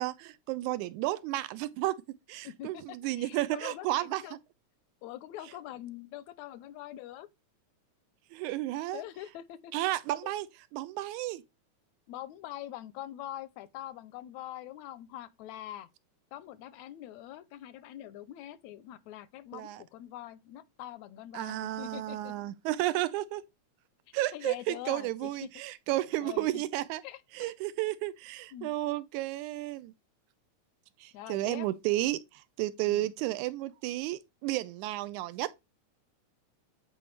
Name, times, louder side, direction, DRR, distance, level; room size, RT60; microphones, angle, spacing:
voice 1, 0.0-2.0 2.3-4.2 8.3-9.0 9.7-10.5 10.7-11.4 19.5-19.8 21.3-23.4 24.1-27.0 27.4-29.9 31.0-35.5, right 16 dB, 80° right, 2.0 m, -32 dB
voice 2, 2.4-4.4 5.0-7.3 8.9-9.7 10.2-10.3 12.1-15.9 16.3-22.3 24.3-25.5 26.2-26.6 27.0-27.5 28.5-28.7 31.1-31.7 32.9-33.1, left 13 dB, 80° left, 1.7 m, -44 dB
9.3 x 4.6 x 3.2 m
omnidirectional pair, 3.5 m